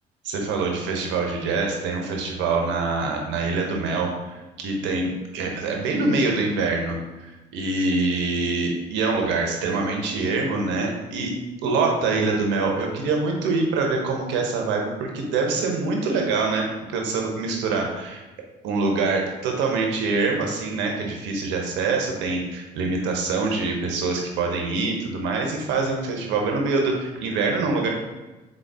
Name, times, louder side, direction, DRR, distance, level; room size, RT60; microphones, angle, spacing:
voice 1, 0.2-11.4 11.6-18.2 18.6-27.9, right 3 dB, 70° right, 1 dB, 0.9 m, -25 dB
3.9 x 3.7 x 3.5 m, 1.1 s
hypercardioid pair, 55°, 19 cm